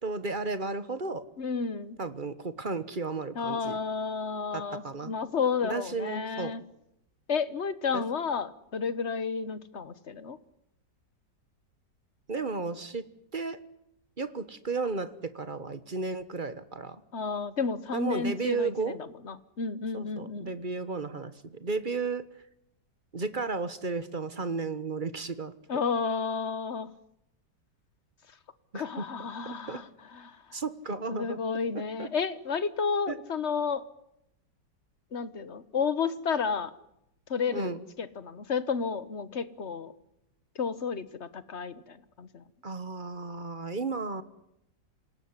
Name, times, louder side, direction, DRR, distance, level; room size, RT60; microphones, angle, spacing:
voice 1, 0.0-1.2 2.0-3.8 4.5-5.1 5.6-6.6 7.9-8.0 12.3-13.0 13.3-13.6 14.2-17.0 17.9-19.0 19.9-22.2 23.1-25.5 28.7-29.1 29.4-29.8 30.5-31.4 32.0-32.1 33.1-33.2 37.5-37.8 42.6-44.2, right 3 dB, 30° right, 13 dB, 1.4 m, -33 dB
voice 2, 1.4-2.0 3.3-6.6 7.3-10.4 17.1-20.5 25.7-26.9 28.7-30.4 31.1-33.9 35.1-36.7 37.3-39.9 40.6-42.4, left 5 dB, 45° left, 15 dB, 1.4 m, -31 dB
27.0 x 18.0 x 9.8 m, 0.82 s
omnidirectional pair, 1.9 m